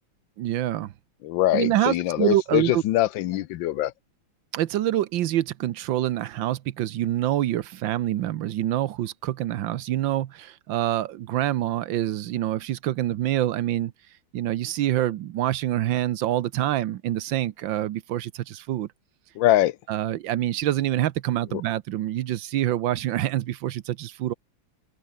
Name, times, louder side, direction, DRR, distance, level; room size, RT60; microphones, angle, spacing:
voice 1, 0.4-0.9 1.5-2.8 4.5-13.9 14.3-18.9 19.9-24.3, right 13 dB, 75° right, 1.5 m, -26 dB
voice 2, 1.2-3.9 19.4-19.8 21.5-21.6, left 14 dB, 80° left, 1.4 m, -23 dB
omnidirectional pair, 2.1 m